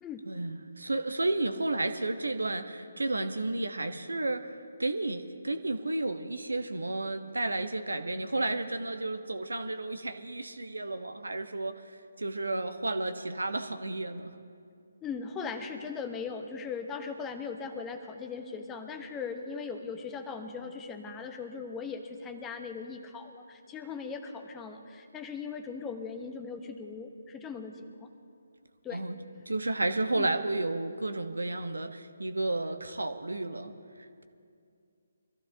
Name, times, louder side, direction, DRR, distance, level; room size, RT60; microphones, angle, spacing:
voice 1, 0.3-14.3 28.9-29.2 29.5-33.7, right 2 dB, 80° right, 8 dB, 1.0 m, -32 dB
voice 2, 15.0-28.1 28.8-29.0 30.1-30.3, left 5 dB, 10° left, 5 dB, 0.9 m, -39 dB
24.0 x 14.5 x 2.7 m, 2.4 s
figure-of-eight pair, 145°, 0 cm